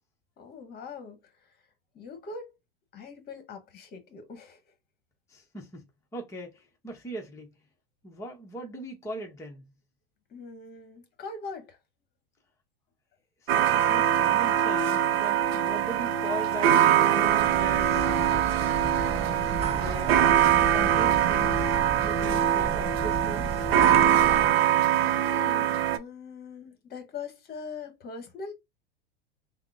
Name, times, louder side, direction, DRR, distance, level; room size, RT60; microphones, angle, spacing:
voice 1, 0.4-1.2 1.9-2.5 2.9-4.6 10.3-11.8 25.0-28.5, left 4 dB, 30° left, 1.1 m, -42 dB
voice 2, 5.3-5.9 6.1-7.5 8.0-9.7 13.4-16.8 17.1-19.4 19.7-21.7 22.0-23.6, equal, 10° left, 0.7 m, -40 dB
sound 1, 13.5-26.0, right 10 dB, 85° right, 0.5 m, -23 dB
sound 2, 17.2-24.5, right 5 dB, 20° right, 0.5 m, -34 dB
3.5 x 2.0 x 3.5 m
hypercardioid pair, 105°, 30 cm